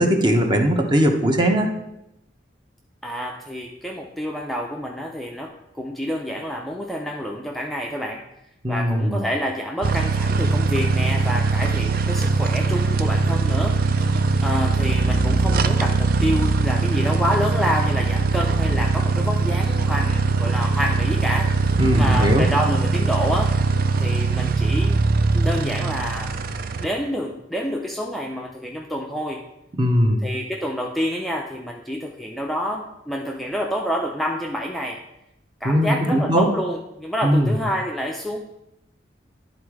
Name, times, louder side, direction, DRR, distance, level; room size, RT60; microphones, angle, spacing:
voice 1, 0.0-1.7 8.6-9.3 21.8-22.5 29.7-30.2 35.6-36.5 37.2-37.5, equal, 25° right, 3 dB, 0.9 m, -19 dB
voice 2, 3.0-8.2 8.7-13.8 14.4-21.7 21.9-23.6 24.0-25.0 25.3-26.3 26.8-29.4 30.2-35.0 35.6-38.4, equal, ahead, -1 dB, 0.5 m, -28 dB
sound 1, 9.8-26.9, right 4 dB, 50° right, 0.4 m, -21 dB
10.5 x 3.9 x 4.8 m, 0.85 s
head